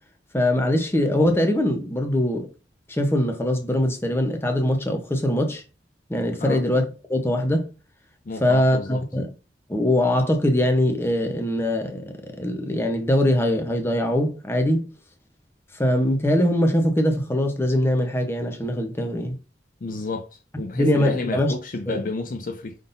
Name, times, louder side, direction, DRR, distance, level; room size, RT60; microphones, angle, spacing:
voice 1, 0.3-2.5 2.9-5.6 6.1-7.7 8.4-9.3 9.7-14.9 15.8-19.3 20.7-21.5 21.9-22.0, left 1 dB, 15° left, 0.8 m, -22 dB
voice 2, 8.3-9.0 19.8-22.8, left 2 dB, 50° left, 0.5 m, -31 dB
5.4 x 3.7 x 2.6 m
head